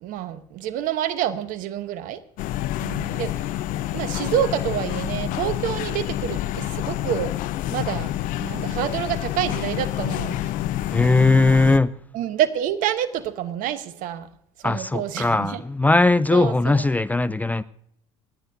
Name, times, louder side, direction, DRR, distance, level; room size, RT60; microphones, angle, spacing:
voice 1, 0.0-2.2 2.8-3.5 3.9-7.4 7.7-10.5 12.1-14.3 14.6-15.6 16.3-16.8, right 10 dB, 60° right, 1.0 m, -28 dB
sound 1, 2.4-11.8, left 13 dB, 55° left, 0.6 m, -28 dB
voice 2, 10.9-11.9 14.6-17.6, left 2 dB, 10° left, 0.4 m, -19 dB
28.5 x 10.5 x 2.7 m
hypercardioid pair, 65°, 16 cm